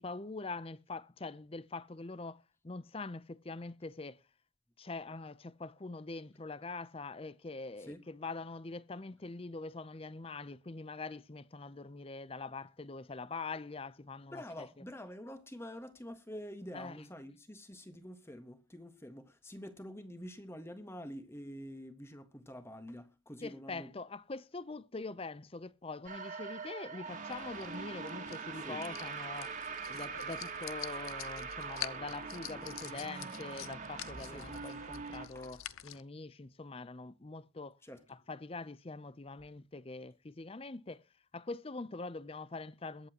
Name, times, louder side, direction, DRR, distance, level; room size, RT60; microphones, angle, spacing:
voice 1, 0.0-4.2 4.8-14.8 16.7-17.0 23.4-29.5 29.9-37.8 38.1-41.0 41.3-43.1, left 3 dB, 25° left, 0.6 m, -44 dB
voice 2, 14.3-23.9 28.6-28.8 34.2-34.5 35.3-35.5 37.8-38.2, equal, 10° left, 1.5 m, -47 dB
sound 1, 26.0-35.3, right 5 dB, 40° right, 2.2 m, -43 dB
sound 2, 27.3-36.0, left 11 dB, 80° left, 0.7 m, -48 dB
22.5 x 8.3 x 2.9 m
head